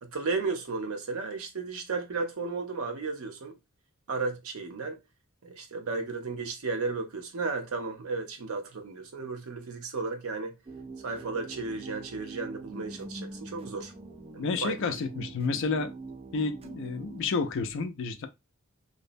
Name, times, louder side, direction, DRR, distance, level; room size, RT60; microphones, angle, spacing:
voice 1, 0.0-3.5 4.1-5.0 5.4-10.5 11.0-13.9 14.3-14.9, right 4 dB, 80° right, 0.6 m, -34 dB
sound 1, 10.6-17.3, right 3 dB, 25° right, 0.3 m, -44 dB
voice 2, 14.4-15.9 16.3-18.3, left 4 dB, 60° left, 0.4 m, -30 dB
2.6 x 2.0 x 2.5 m
head